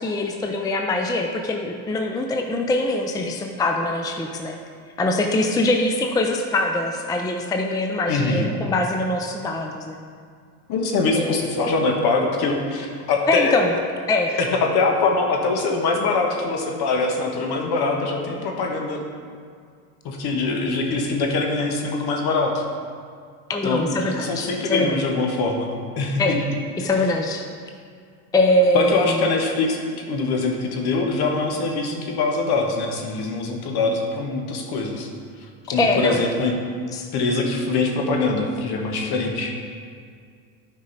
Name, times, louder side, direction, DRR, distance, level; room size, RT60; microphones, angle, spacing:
voice 1, 0.0-4.6 5.0-10.0 11.2-11.4 13.3-13.7 14.1-14.4 23.5-25.0 26.2-26.4 26.8-27.5 28.3-29.2 35.8-36.3 36.9-37.1, left 2 dB, 10° left, 3 dB, 0.5 m, -23 dB
voice 2, 8.1-8.5 10.7-13.7 14.3-19.0 20.0-22.6 23.6-25.7 26.0-26.4 28.7-29.8 30.1-35.1 35.7-36.5 37.1-39.5, left 3 dB, 55° left, 2 dB, 1.4 m, -23 dB
9.3 x 5.4 x 4.1 m, 2.2 s
supercardioid pair, 90°, 46 cm